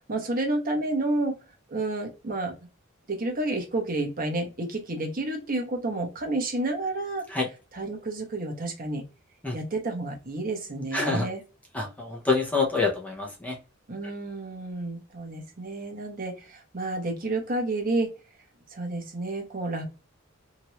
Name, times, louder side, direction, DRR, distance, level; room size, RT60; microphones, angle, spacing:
voice 1, 0.1-1.3 1.7-2.5 3.1-7.2 7.7-9.0 9.5-11.4 13.9-18.1 18.7-19.9, right 2 dB, 45° right, 3 dB, 1.0 m, -30 dB
voice 2, 10.9-11.3 11.7-13.6 14.0-14.1, left 3 dB, 5° left, -1 dB, 0.7 m, -26 dB
2.9 x 2.6 x 2.9 m, 0.31 s
head